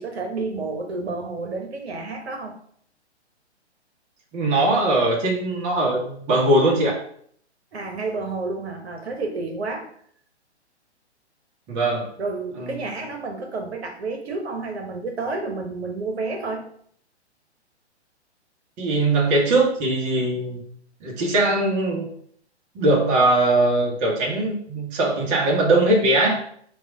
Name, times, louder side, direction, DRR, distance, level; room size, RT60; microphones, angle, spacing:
voice 1, 0.0-2.5 7.7-9.9 12.2-16.6, right 3 dB, 65° right, 4 dB, 0.9 m, -30 dB
voice 2, 4.3-7.0 11.7-12.1 12.6-12.8 18.8-20.6 21.0-22.1 22.7-26.4, right 2 dB, 20° right, -2 dB, 0.9 m, -20 dB
4.6 x 2.4 x 3.7 m, 0.62 s
figure-of-eight pair, 125°, 34 cm